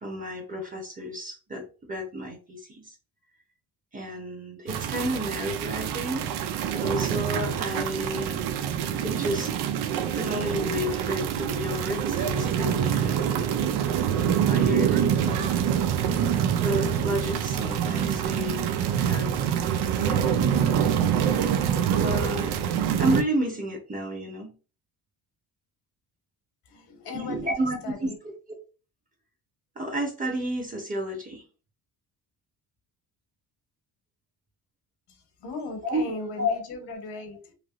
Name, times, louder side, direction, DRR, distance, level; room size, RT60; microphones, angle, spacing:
voice 1, 0.0-2.9 3.9-6.2 6.7-8.3 9.0-9.5 10.1-13.5 14.5-15.6 16.6-18.7 19.0-19.5 20.0-20.9 22.0-22.6 23.0-24.5 27.1-28.1 29.8-31.4 35.8-36.0 36.4-36.5, equal, 20° right, 2 dB, 0.9 m, -31 dB
sound 1, 4.7-23.2, right 9 dB, 75° right, 0.5 m, -25 dB
voice 2, 26.6-28.2 35.1-37.5, left 3 dB, 80° left, 4 dB, 1.2 m, -38 dB
3.3 x 2.5 x 2.4 m, 0.34 s
cardioid pair, 120°, 39 cm